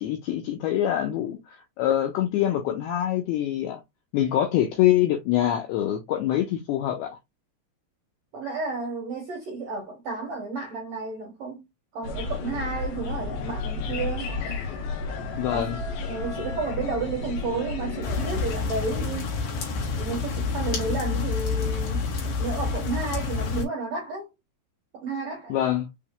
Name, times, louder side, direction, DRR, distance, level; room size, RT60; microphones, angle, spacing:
voice 1, 0.0-3.8 4.1-7.1 15.4-15.8 25.5-25.9, left 12 dB, 90° left, 2.3 m, -25 dB
voice 2, 8.3-11.6 11.9-14.3 15.5-15.7 16.0-19.3 20.0-22.0 22.4-24.3 24.9-25.6, right 4 dB, 80° right, 1.5 m, -32 dB
sound 1, 12.0-18.6, left 4 dB, 75° left, 3.0 m, -32 dB
sound 2, 18.0-23.6, left 4 dB, 60° left, 3.0 m, -28 dB
7.0 x 2.8 x 2.2 m
omnidirectional pair, 5.1 m